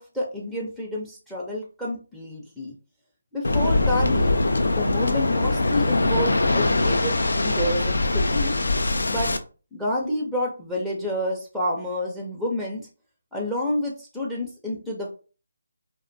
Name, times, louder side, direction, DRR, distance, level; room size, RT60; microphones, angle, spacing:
voice 1, 0.0-2.7 3.3-4.4 4.8-8.6 9.1-9.3 9.7-12.9 13.3-15.1, left 1 dB, ahead, -3 dB, 0.5 m, -29 dB
Waves surf, 3.4-9.4, left 2 dB, 75° left, 0.3 m, -22 dB
2.4 x 2.1 x 2.6 m, 0.35 s
figure-of-eight pair, 155°, 0 cm